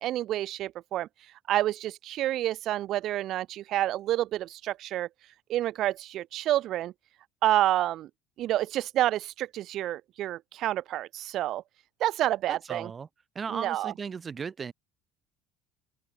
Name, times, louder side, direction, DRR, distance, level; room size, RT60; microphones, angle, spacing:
voice 1, 0.0-6.9 7.4-8.1 8.4-11.6 12.0-12.9 13.5-13.9, right 13 dB, 55° right, 0.8 m, -29 dB
voice 2, 12.5-13.1 13.3-14.7, right 6 dB, 25° right, 5.8 m, -36 dB
cardioid pair, 130°, 0 cm